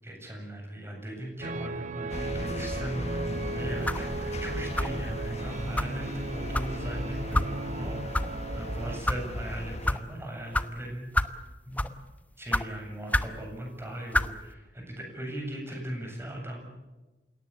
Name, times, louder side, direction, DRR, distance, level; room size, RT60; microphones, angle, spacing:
voice 1, 0.0-8.0 8.5-11.1 11.7-11.9 12.4-16.7, right 1 dB, 15° right, 1 dB, 7.8 m, -38 dB
sound 1, 1.4-9.0, right 2 dB, 45° right, 0.8 m, -36 dB
sound 2, 2.1-9.9, left 1 dB, 40° left, 1.8 m, -37 dB
sound 3, 3.8-4.1 4.8-5.0 5.8-5.9 6.5-6.7 7.3-7.5 8.1-8.3 8.9-9.2 9.8-10.0 10.5-10.7 11.1-11.4 11.7-12.0 12.5-12.7 13.1-13.3 14.1-14.3, left 1 dB, 10° left, 1.0 m, -27 dB
29.0 x 17.5 x 9.0 m, 1.1 s
head